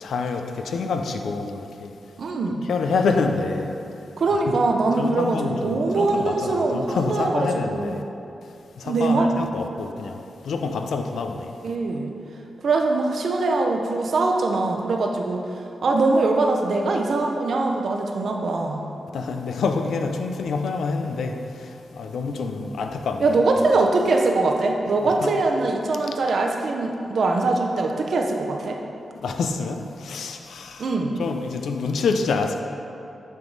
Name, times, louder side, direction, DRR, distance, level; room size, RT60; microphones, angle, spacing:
voice 1, 0.0-1.9 2.7-3.7 5.0-8.0 8.8-11.6 19.1-23.2 25.2-25.3 29.1-30.9 31.2-32.6, left 4 dB, 85° left, 5 dB, 0.4 m, -27 dB
voice 2, 2.2-2.7 4.2-7.9 8.8-9.3 11.6-12.1 12.6-18.8 23.2-28.8 30.8-31.2, right 3 dB, 70° right, 2 dB, 0.6 m, -22 dB
8.9 x 3.6 x 3.9 m, 2.7 s
cardioid pair, 65°, 0 cm